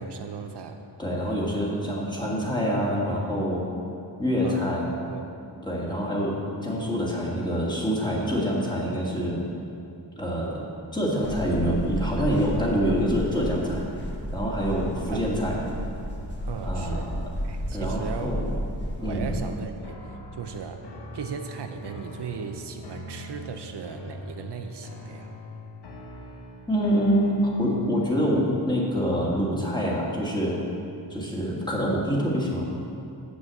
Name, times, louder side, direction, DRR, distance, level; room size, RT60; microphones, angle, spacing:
voice 1, 0.0-0.8 4.4-4.8 5.1-5.2 15.1-15.3 16.5-17.1 17.4-18.7 19.0-20.9 21.1-25.4, right 6 dB, 75° right, 6 dB, 0.7 m, -37 dB
voice 2, 1.0-3.7 4.2-4.9 5.6-9.4 10.2-10.6 10.9-13.8 14.3-15.6 16.6-17.2 17.7-18.4 19.0-19.3 26.7-30.6 31.1-32.7, equal, 10° left, -4 dB, 1.7 m, -26 dB
sound 1, 11.2-19.4, equal, 25° left, 1.3 m, -32 dB
sound 2, 19.8-27.9, left 1 dB, 70° left, 1.2 m, -42 dB
7.5 x 6.2 x 7.5 m, 2.6 s
wide cardioid pair, 130°, 41 cm